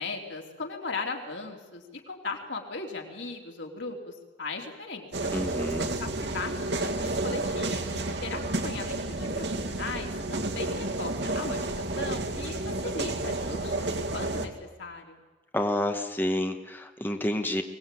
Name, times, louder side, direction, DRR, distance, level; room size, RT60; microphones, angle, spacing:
voice 1, 0.0-5.3 6.0-15.2, left 3 dB, 90° left, 2 dB, 3.7 m, -38 dB
sound 1, 5.1-14.5, right 2 dB, 70° right, 2.2 m, -31 dB
voice 2, 5.3-5.9 15.5-17.6, left 1 dB, 10° left, 5 dB, 1.4 m, -29 dB
23.5 x 19.0 x 9.3 m, 1.2 s
head